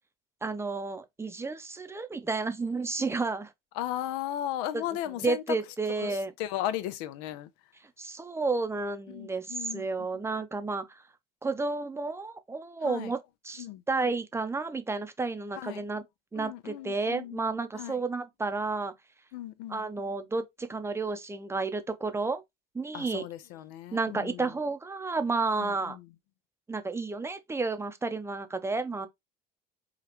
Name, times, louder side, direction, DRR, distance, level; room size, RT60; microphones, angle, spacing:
voice 1, 0.4-3.5 4.7-4.8 5.2-6.3 8.0-11.0 11.4-13.2 13.4-16.0 16.3-18.9 19.7-22.4 22.7-23.2 23.9-26.0 26.7-29.1, right 3 dB, 15° right, 0.6 m, -31 dB
voice 2, 3.7-5.6 6.0-7.5 9.1-9.9 12.8-13.1 13.6-13.8 15.6-15.8 16.4-17.4 17.8-18.0 19.3-19.8 22.9-24.5 25.6-26.1, left 12 dB, 80° left, 0.6 m, -36 dB
5.0 x 2.4 x 3.0 m
supercardioid pair, 110°, 18 cm